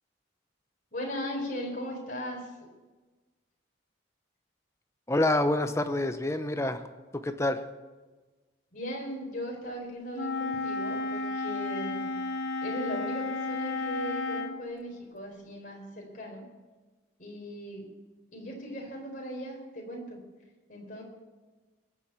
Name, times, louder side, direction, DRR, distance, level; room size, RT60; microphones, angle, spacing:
voice 1, 0.9-2.6 8.7-12.1 12.6-16.4 17.2-17.9 18.3-20.2 20.7-21.0, equal, 45° left, 0 dB, 4.1 m, -38 dB
voice 2, 5.1-6.8 7.1-7.6, left 1 dB, 15° left, 9 dB, 0.7 m, -27 dB
Wind instrument woodwind instrument, 10.1-14.6, left 3 dB, 60° left, 1.1 m, -32 dB
21.5 x 7.3 x 8.2 m, 1.3 s
head